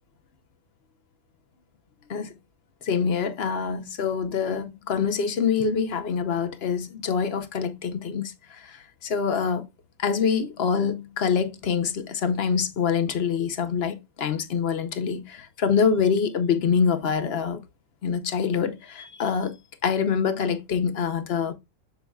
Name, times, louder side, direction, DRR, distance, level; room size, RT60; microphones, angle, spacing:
voice 1, 2.9-8.3 9.0-9.6 10.0-17.6 18.0-19.5 19.8-21.5, left 6 dB, 50° left, 0.9 m, -25 dB
7.0 x 6.8 x 2.3 m
omnidirectional pair, 1.5 m